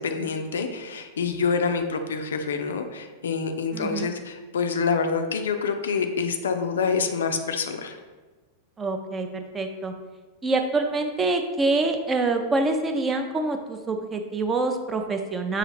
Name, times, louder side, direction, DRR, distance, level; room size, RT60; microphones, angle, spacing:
voice 1, 0.0-8.0, left 5 dB, 65° left, 6 dB, 0.3 m, -27 dB
voice 2, 3.7-4.1 8.8-9.9 10.4-15.6, right 3 dB, 20° right, 5 dB, 0.4 m, -26 dB
5.5 x 2.4 x 3.1 m, 1.3 s
figure-of-eight pair, 90°, 0 cm